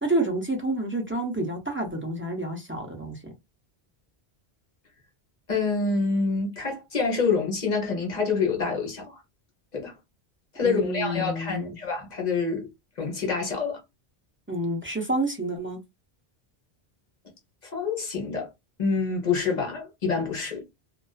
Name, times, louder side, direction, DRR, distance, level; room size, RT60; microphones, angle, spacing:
voice 1, 0.0-3.3 10.6-11.8 14.5-15.8, right 1 dB, 15° right, 0.4 m, -29 dB
voice 2, 5.5-9.2 9.7-9.9 10.5-12.7 13.0-13.8 17.6-18.5 18.8-20.6, left 4 dB, 45° left, 0.9 m, -27 dB
2.4 x 2.3 x 2.3 m
omnidirectional pair, 1.1 m